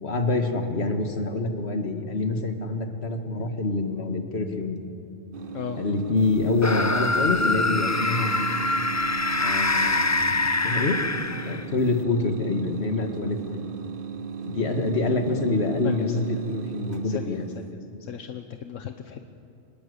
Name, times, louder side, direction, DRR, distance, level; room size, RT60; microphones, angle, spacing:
voice 1, 0.0-4.8 5.8-8.6 9.4-10.1 10.6-11.0 11.5-13.6 14.5-17.5, left 3 dB, 55° left, 5 dB, 2.1 m, -26 dB
sound 1, 5.3-17.7, right 7 dB, 45° right, 1.1 m, -36 dB
sound 2, 6.6-11.8, left 3 dB, 20° left, 0.4 m, -24 dB
voice 2, 15.8-16.1 17.1-17.4 18.1-19.3, left 8 dB, 80° left, 7 dB, 1.3 m, -36 dB
25.0 x 20.0 x 8.0 m, 2.6 s
omnidirectional pair, 1.3 m